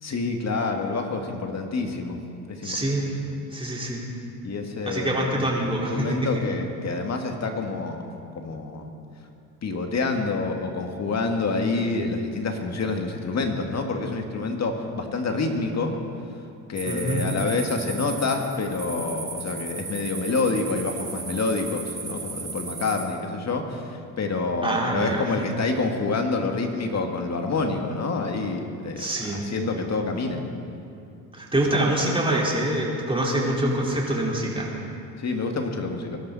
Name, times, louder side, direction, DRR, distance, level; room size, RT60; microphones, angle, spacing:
voice 1, 0.0-2.2 2.5-2.8 4.4-5.5 5.9-8.1 8.4-8.9 9.6-15.9 16.7-30.4 35.2-36.2, left 3 dB, 45° left, 3 dB, 2.2 m, -27 dB
voice 2, 2.6-3.1 3.5-4.0 4.8-6.4 16.8-17.3 24.6-25.4 29.0-29.5 31.3-34.7, right 1 dB, 15° right, -4 dB, 4.6 m, -25 dB
sound 1, 16.8-23.0, right 4 dB, 35° right, 4.7 m, -36 dB
23.0 x 12.5 x 4.3 m, 2.5 s
supercardioid pair, 70°, 38 cm